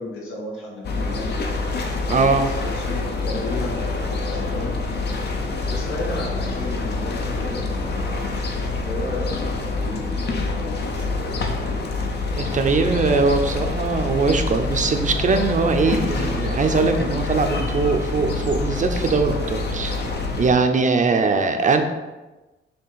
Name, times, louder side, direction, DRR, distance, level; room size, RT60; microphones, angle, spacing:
voice 1, 0.0-1.3 2.0-4.8 5.7-11.2, left 2 dB, 85° left, -3 dB, 2.2 m, -34 dB
sound 1, 0.8-20.5, left 3 dB, 50° left, 0.9 m, -26 dB
voice 2, 2.1-2.5 12.4-20.0 20.4-21.8, right 4 dB, 35° right, 6 dB, 0.6 m, -21 dB
6.8 x 3.4 x 5.6 m, 1.1 s
wide cardioid pair, 155°, 21 cm